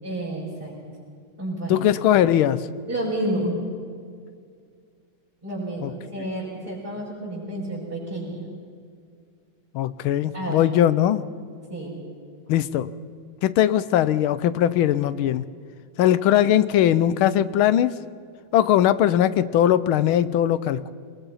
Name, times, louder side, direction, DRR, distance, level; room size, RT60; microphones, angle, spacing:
voice 1, 0.0-0.7 1.4-1.9 2.9-3.6 5.4-8.5 10.3-10.7 11.7-11.9, right 1 dB, 25° right, -8 dB, 6.0 m, -30 dB
voice 2, 1.7-2.6 5.8-5.9 9.7-11.2 12.5-12.9 13.4-15.4 16.0-18.0 18.5-20.9, left 11 dB, 85° left, 15 dB, 1.6 m, -20 dB
23.5 x 21.0 x 5.6 m, 2.2 s
omnidirectional pair, 2.2 m